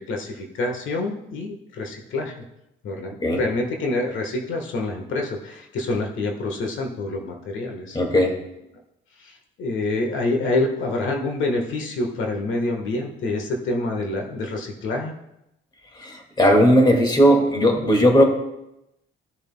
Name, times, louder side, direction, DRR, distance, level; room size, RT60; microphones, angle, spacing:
voice 1, 0.0-2.3 2.8-8.0 9.2-15.1, left 2 dB, 75° left, 1 dB, 1.4 m, -27 dB
voice 2, 7.9-8.4 15.9-18.3, equal, 20° left, 2 dB, 1.9 m, -17 dB
15.5 x 7.0 x 2.2 m, 0.87 s
cardioid pair, 90°, 20 cm